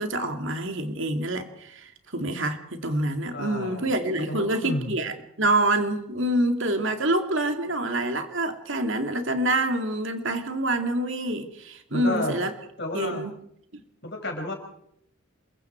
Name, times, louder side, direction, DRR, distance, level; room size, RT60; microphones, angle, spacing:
voice 1, 0.0-12.5 12.9-13.3 13.7-13.8, right 1 dB, 60° right, 6 dB, 2.6 m, -26 dB
voice 2, 3.3-3.9 4.3-4.9 11.9-12.4 12.8-13.2 14.0-14.5, left 1 dB, 50° left, 3 dB, 5.5 m, -31 dB
27.5 x 22.5 x 4.6 m, 0.72 s
head